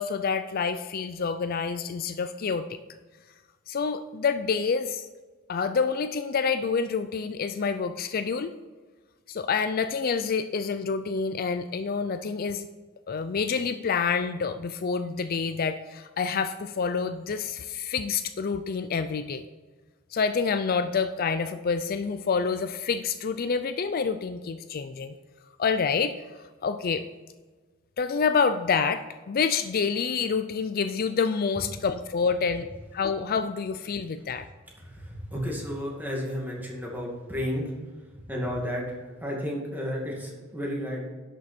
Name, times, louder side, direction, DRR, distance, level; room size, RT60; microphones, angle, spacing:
voice 1, 0.0-2.7 3.7-5.1 5.5-8.5 9.3-12.7 13.1-19.4 20.1-25.1 25.6-26.2 26.6-27.0 28.0-32.7 32.9-34.4, left 5 dB, 45° left, 10 dB, 0.4 m, -27 dB
voice 2, 34.8-37.7 38.2-41.1, equal, 10° right, -2 dB, 2.3 m, -32 dB
11.0 x 6.8 x 4.4 m, 1.3 s
head